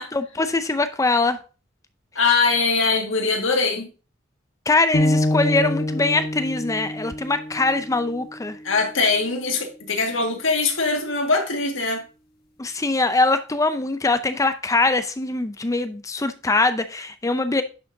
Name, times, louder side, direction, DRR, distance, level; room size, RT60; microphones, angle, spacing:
voice 1, 0.1-1.4 4.7-8.6 12.6-17.6, left 3 dB, 15° left, 0.5 m, -22 dB
voice 2, 2.2-3.9 8.6-12.0, left 4 dB, 70° left, 2.0 m, -22 dB
sound 1, 4.9-9.1, left 1 dB, 50° left, 1.4 m, -26 dB
10.5 x 6.9 x 2.7 m
head